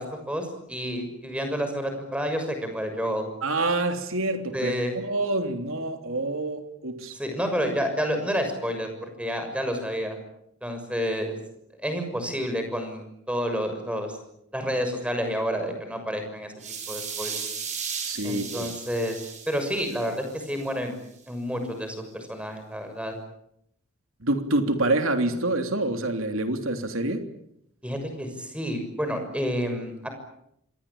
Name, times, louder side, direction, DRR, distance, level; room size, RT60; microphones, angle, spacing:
voice 1, 0.0-3.2 4.5-4.9 7.1-10.2 10.6-11.4 11.8-14.2 14.5-16.5 16.9-17.4 18.2-19.2 19.5-21.0 21.3-23.2 27.8-30.1, equal, 5° right, 6 dB, 6.5 m, -29 dB
voice 2, 3.4-7.2 18.0-18.7 24.2-27.2, right 2 dB, 70° right, 6 dB, 3.3 m, -27 dB
sound 1, 16.6-20.7, right 6 dB, 35° right, 7.0 m, -36 dB
27.5 x 21.5 x 8.8 m, 0.75 s
head